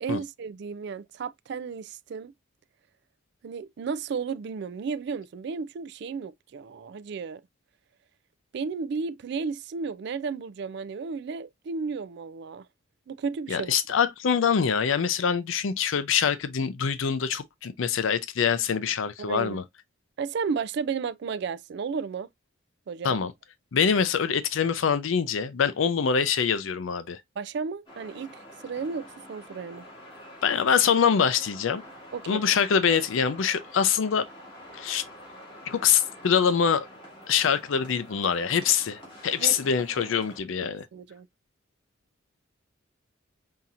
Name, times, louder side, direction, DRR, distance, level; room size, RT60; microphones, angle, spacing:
voice 1, 0.0-2.3 3.4-7.4 8.5-12.7 13.1-13.7 19.2-19.6 20.2-22.3 22.9-23.2 27.4-29.8 32.1-32.4 39.4-39.6 40.6-41.3, right 5 dB, 60° right, 0.3 m, -33 dB
voice 2, 13.5-19.6 23.0-23.3 23.7-27.2 30.4-31.8 32.3-34.2 34.7-35.1 35.7-36.9 37.3-40.9, left 7 dB, 75° left, 0.5 m, -24 dB
sound 1, 27.9-40.4, left 1 dB, 25° left, 2.0 m, -47 dB
5.6 x 2.8 x 2.4 m
head